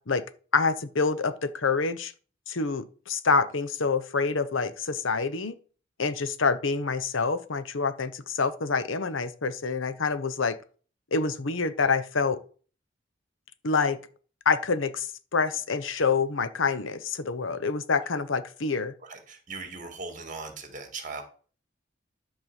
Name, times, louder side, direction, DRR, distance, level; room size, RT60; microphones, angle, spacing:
voice 1, 0.5-2.1 2.5-5.5 6.0-10.6 11.1-12.4 13.6-14.0 14.5-18.9, left 4 dB, 90° left, 0.9 m, -27 dB
voice 2, 19.0-21.2, right 3 dB, 40° right, 2.3 m, -39 dB
11.0 x 4.4 x 7.4 m
head